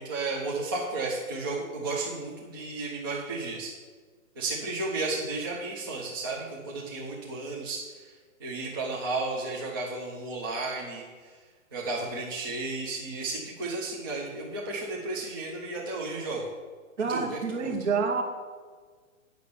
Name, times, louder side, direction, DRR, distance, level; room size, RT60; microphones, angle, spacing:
voice 1, 0.0-3.7 4.4-8.1 8.4-11.0 11.7-16.5 17.1-17.7, right 3 dB, 15° right, -3 dB, 0.6 m, -33 dB
voice 2, 17.0-18.2, right 5 dB, 55° right, 4 dB, 1.7 m, -28 dB
8.7 x 6.4 x 6.8 m, 1.5 s
hypercardioid pair, 170°, 42 cm